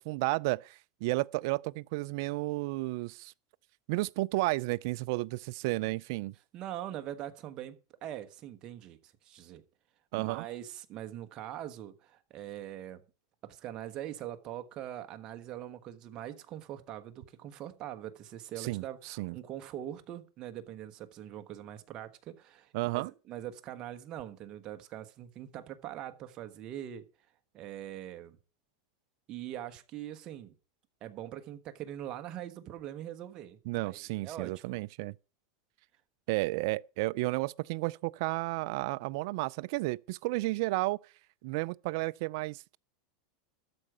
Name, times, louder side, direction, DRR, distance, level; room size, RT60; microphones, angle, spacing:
voice 1, 0.0-3.3 3.9-6.3 10.1-10.5 18.6-19.4 22.7-23.1 33.7-35.1 36.3-41.0 41.4-42.8, right 22 dB, 60° right, 0.4 m, -32 dB
voice 2, 6.5-7.8 8.0-9.6 10.2-13.0 13.4-27.0 27.5-28.4 29.3-30.5 31.0-34.8, right 12 dB, 35° right, 1.3 m, -42 dB
13.0 x 4.9 x 8.0 m
supercardioid pair, 140°, 2 cm